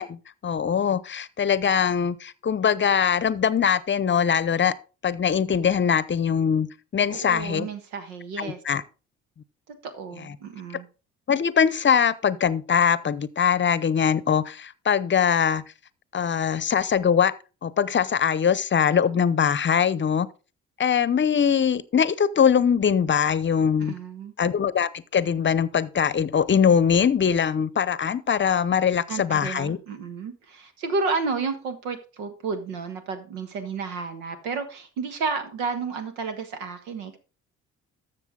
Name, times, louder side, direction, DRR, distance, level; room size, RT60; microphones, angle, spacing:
voice 1, 0.0-4.7 5.0-6.7 6.9-7.7 8.4-8.8 10.2-10.3 11.3-15.6 16.1-17.3 17.6-20.3 20.8-23.9 24.4-29.8, left 7 dB, 35° left, 0.8 m, -22 dB
voice 2, 7.0-8.6 9.7-10.9 23.8-24.3 29.1-37.2, right 4 dB, 85° right, 1.4 m, -31 dB
13.0 x 6.6 x 3.8 m
hypercardioid pair, 55°, 32 cm